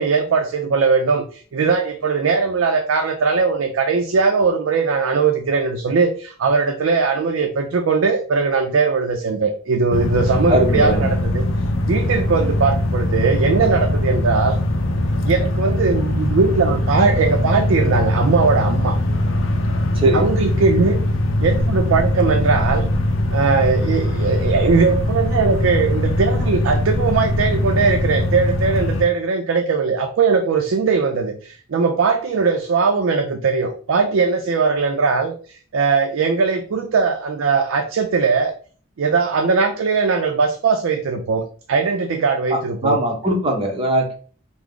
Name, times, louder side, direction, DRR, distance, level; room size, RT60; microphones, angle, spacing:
voice 1, 0.0-11.4 11.9-14.6 15.2-19.0 20.1-21.0 21.4-22.9 23.3-38.5 39.0-43.0, right 4 dB, 75° right, 4 dB, 0.4 m, -19 dB
sound 1, 9.9-29.0, left 1 dB, 70° left, 0.5 m, -21 dB
voice 2, 10.5-11.1 20.0-20.3 42.5-44.1, right 1 dB, 25° right, 1 dB, 0.7 m, -20 dB
3.4 x 2.0 x 3.6 m, 0.41 s
head